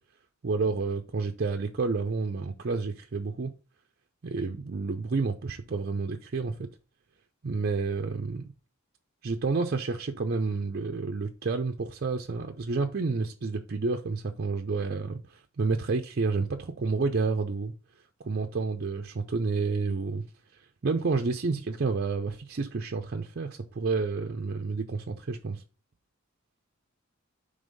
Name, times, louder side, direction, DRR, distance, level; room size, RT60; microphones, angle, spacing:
voice 1, 0.4-3.5 4.2-6.7 7.4-8.5 9.2-17.7 18.2-20.2 20.8-25.6, right 4 dB, 50° right, 0.5 m, -30 dB
5.4 x 3.4 x 5.2 m
head